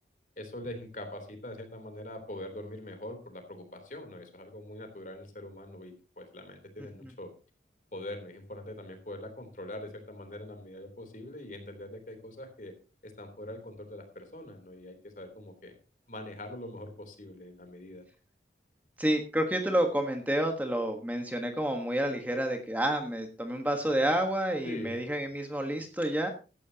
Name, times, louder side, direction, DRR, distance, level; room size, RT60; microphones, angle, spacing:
voice 1, 0.4-7.3 7.9-12.7 13.0-15.7 16.1-18.0 24.6-25.0, left 1 dB, 45° left, 6 dB, 3.5 m, -43 dB
voice 2, 19.0-26.3, right 1 dB, 10° right, 4 dB, 1.4 m, -29 dB
16.0 x 12.0 x 2.9 m, 0.33 s
head